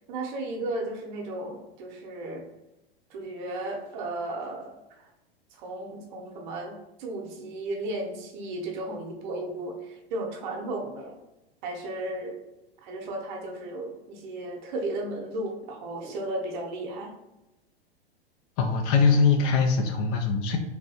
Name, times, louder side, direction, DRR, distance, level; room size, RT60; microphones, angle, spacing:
voice 1, 0.1-2.4 3.1-5.1 5.5-11.2 11.6-12.4 12.8-17.1, right 2 dB, 50° right, 1 dB, 0.8 m, -34 dB
voice 2, 18.6-20.6, left 5 dB, 35° left, 4 dB, 0.4 m, -22 dB
3.3 x 2.6 x 2.7 m, 0.96 s
figure-of-eight pair, 95°, 31 cm